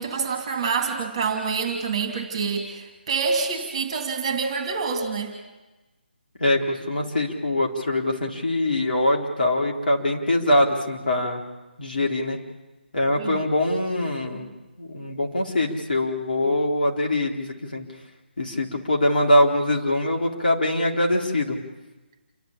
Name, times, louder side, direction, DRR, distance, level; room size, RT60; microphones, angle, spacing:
voice 1, 0.0-5.3 13.2-13.4, right 5 dB, 30° right, 6 dB, 2.9 m, -27 dB
voice 2, 6.4-11.4 11.8-12.4 12.9-14.5 14.8-17.9 18.4-21.6, left 1 dB, 55° left, 0 dB, 3.7 m, -23 dB
28.5 x 12.5 x 8.7 m, 1.1 s
figure-of-eight pair, 150°, 6 cm